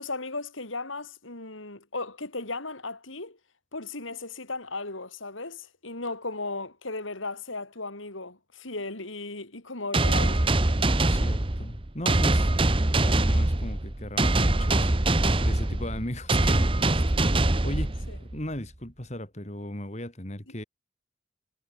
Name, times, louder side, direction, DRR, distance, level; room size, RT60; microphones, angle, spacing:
voice 1, 0.0-3.4 3.7-10.4 18.1-18.2, left 3 dB, 90° left, 5.7 m, -36 dB
sound 1, 9.9-18.4, right 2 dB, 25° right, 1.1 m, -23 dB
voice 2, 11.0-12.5 13.0-14.9 15.4-17.2 17.6-18.0 18.3-20.6, left 1 dB, 35° left, 3.6 m, -36 dB
head